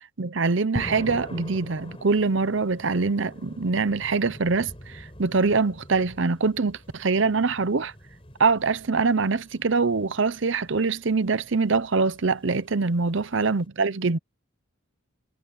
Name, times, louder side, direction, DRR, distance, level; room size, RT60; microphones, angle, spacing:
voice 1, 0.2-7.9 8.4-14.2, right 4 dB, 60° right, 0.7 m, -24 dB
sound 1, 0.8-13.7, equal, 25° left, 5.9 m, -43 dB
head